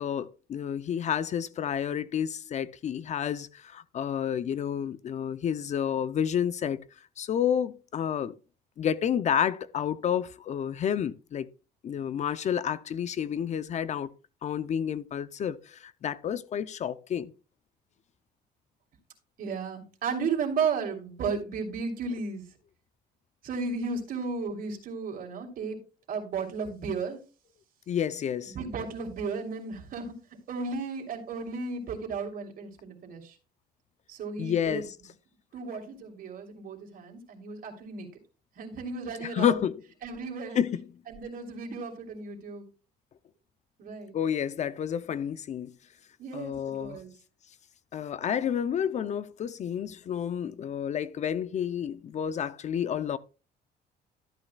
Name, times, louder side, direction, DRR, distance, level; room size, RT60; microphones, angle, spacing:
voice 1, 0.0-6.8 7.2-8.3 8.8-11.5 11.8-14.1 14.4-17.3 27.9-28.5 34.4-34.9 39.2-39.8 40.5-40.8 44.1-45.7 46.3-47.0 47.9-53.2, left 9 dB, 45° left, 0.5 m, -30 dB
voice 2, 19.4-22.4 23.4-25.8 26.1-27.2 28.4-30.2 30.5-33.4 34.1-34.8 35.5-38.1 38.6-39.6 40.0-40.6 41.1-42.7 43.8-44.1 46.2-47.1, right 5 dB, 55° right, 2.9 m, -34 dB
13.0 x 8.6 x 2.3 m
cardioid pair, 110°, 17 cm